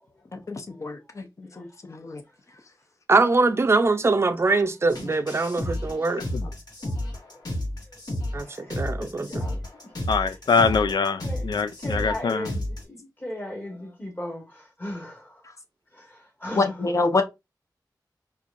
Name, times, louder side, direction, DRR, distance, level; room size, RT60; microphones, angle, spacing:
voice 1, 0.3-1.2 1.6-2.2 16.5-17.2, left 3 dB, 45° left, 0.7 m, -26 dB
voice 2, 3.1-6.5 8.3-9.4, right 3 dB, 35° right, 0.5 m, -23 dB
sound 1, 4.9-12.8, left 1 dB, 65° left, 1.6 m, -32 dB
voice 3, 9.2-9.6 10.2-10.3 10.6-10.9 11.2-11.4 11.8-15.3 16.4-16.7, left 1 dB, 25° left, 1.4 m, -36 dB
voice 4, 10.1-12.5, left 5 dB, 85° left, 0.4 m, -24 dB
4.4 x 2.5 x 2.5 m
wide cardioid pair, 85°, 7 cm